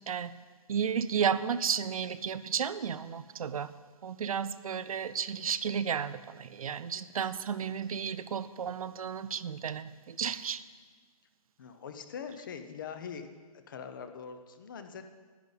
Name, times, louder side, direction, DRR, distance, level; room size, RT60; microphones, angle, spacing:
voice 1, 0.7-3.7 4.0-10.6, right 7 dB, 70° right, 15 dB, 0.5 m, -33 dB
voice 2, 11.6-13.3 13.7-15.0, left 7 dB, 35° left, 8 dB, 0.7 m, -42 dB
10.5 x 10.5 x 4.0 m, 1.5 s
hypercardioid pair, 170°, 19 cm